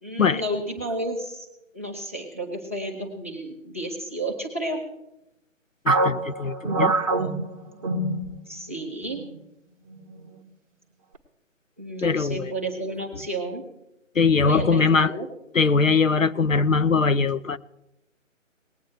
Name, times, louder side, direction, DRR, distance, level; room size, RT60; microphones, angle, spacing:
voice 1, 0.0-1.5 1.7-4.8 8.5-9.3 11.8-13.6 14.4-15.3, right 1 dB, 10° right, 0.7 m, -31 dB
voice 2, 5.9-6.9 12.0-12.5 14.2-15.1 15.5-17.6, left 4 dB, 85° left, 0.7 m, -21 dB
sound 1, 5.9-8.7 9.0-9.2 9.9-10.3, right 3 dB, 25° right, 1.0 m, -25 dB
19.5 x 8.7 x 3.2 m
figure-of-eight pair, 150°, 39 cm